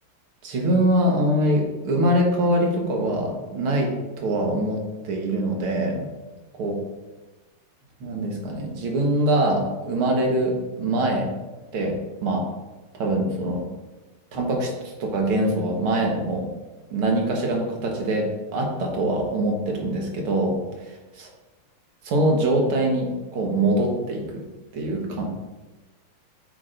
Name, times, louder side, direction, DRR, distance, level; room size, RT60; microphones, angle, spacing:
voice 1, 0.4-3.9 4.2-6.1 6.6-6.7 8.0-11.3 11.7-12.0 12.2-12.4 12.9-13.6 14.3-14.7 15.0-16.5 16.9-20.6 20.8-21.0 22.0-24.4 24.7-25.2, right 1 dB, 85° right, 1 dB, 2.3 m, -23 dB
8.5 x 8.4 x 2.6 m, 1.2 s
omnidirectional pair, 2.3 m